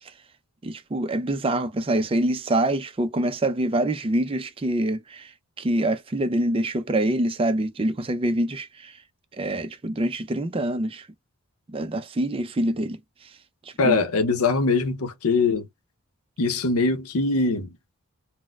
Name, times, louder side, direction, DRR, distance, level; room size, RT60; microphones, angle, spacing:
voice 1, 0.6-5.3 5.6-9.0 9.4-11.1 11.7-13.0 13.7-14.0, right 1 dB, 25° right, 0.4 m, -25 dB
voice 2, 13.8-15.7 16.4-17.7, left 3 dB, 80° left, 0.7 m, -22 dB
4.2 x 2.1 x 2.2 m
head